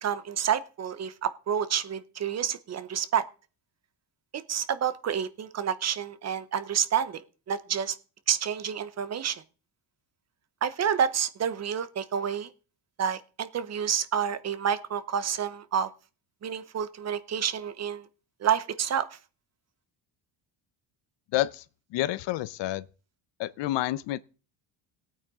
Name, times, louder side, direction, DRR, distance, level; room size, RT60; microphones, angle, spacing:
voice 1, 0.0-3.2 4.3-7.2 7.5-8.0 8.3-9.4 10.6-12.5 13.0-15.9 16.4-18.1 18.4-19.1, right 8 dB, 35° right, 0.8 m, -29 dB
voice 2, 21.3-21.6 21.9-22.9 23.4-24.2, left 15 dB, 70° left, 0.7 m, -29 dB
18.0 x 8.9 x 3.7 m
cardioid pair, 150°, 44 cm